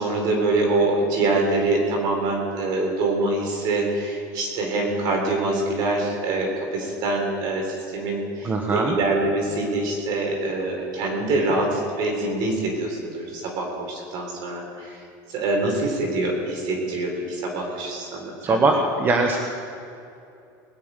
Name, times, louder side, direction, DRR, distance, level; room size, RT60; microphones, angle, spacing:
voice 1, 0.0-15.0 15.3-18.6, right 2 dB, 50° right, 1 dB, 3.7 m, -25 dB
voice 2, 8.4-9.0 18.4-19.4, right 3 dB, 20° right, 3 dB, 1.0 m, -21 dB
20.5 x 6.9 x 8.9 m, 2.6 s
cardioid pair, 150°, 9 cm